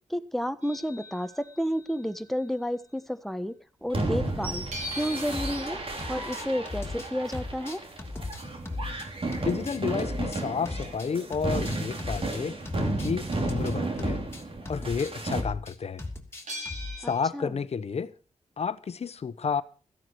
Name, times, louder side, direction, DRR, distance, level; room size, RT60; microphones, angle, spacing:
voice 1, 0.1-3.5 3.8-4.6 4.9-5.8 6.1-7.8 17.0-17.6, equal, ahead, 1.2 m, -31 dB
sound 1, 0.6-2.8 4.7-11.4 16.5-17.2, equal, 85° right, 5.1 m, -45 dB
sound 2, 3.9-15.4, right 2 dB, 50° right, 3.3 m, -33 dB
sound 3, 5.0-5.7 6.0-9.1 9.3-12.4 12.7-17.0, left 2 dB, 20° left, 2.9 m, -37 dB
voice 2, 9.4-14.2 14.7-16.0 17.0-18.1 18.6-19.6, left 6 dB, 60° left, 1.1 m, -31 dB
16.5 x 14.0 x 4.7 m
wide cardioid pair, 95°, 12 cm